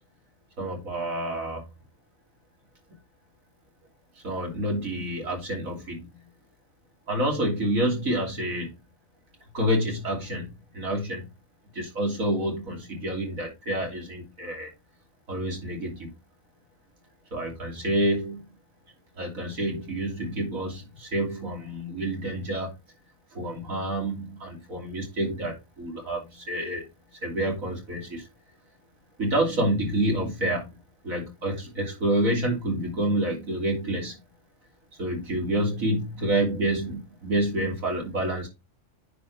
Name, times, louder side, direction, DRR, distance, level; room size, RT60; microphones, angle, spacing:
voice 1, 0.6-1.7 4.2-6.1 7.1-8.7 9.5-11.3 11.7-14.7 15.3-16.1 17.3-18.4 19.2-22.7 23.3-26.9 27.2-28.3 29.2-30.7 31.0-34.2 35.0-38.5, right 1 dB, 85° right, 3.5 m, -28 dB
9.9 x 4.3 x 4.1 m
omnidirectional pair, 1.4 m